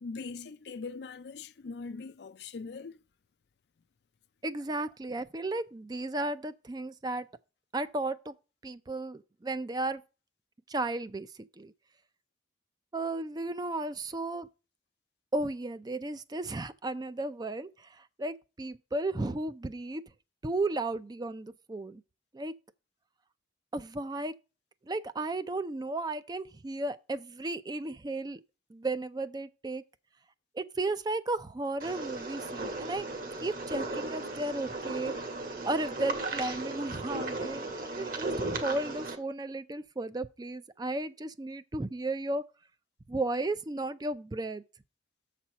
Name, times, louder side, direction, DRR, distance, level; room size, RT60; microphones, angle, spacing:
voice 1, 0.0-3.0, left 4 dB, 60° left, 0.4 m, -41 dB
voice 2, 4.4-7.3 7.7-8.3 8.6-10.0 10.7-11.7 12.9-14.5 15.3-20.1 20.4-22.0 22.3-22.5 23.7-24.3 24.9-28.4 28.7-29.8 30.5-33.1 33.4-35.1 35.6-42.5 43.1-44.6, right 2 dB, 20° right, 0.4 m, -34 dB
sound 1, 31.8-39.2, right 2 dB, 50° right, 1.6 m, -36 dB
7.2 x 4.3 x 6.0 m
head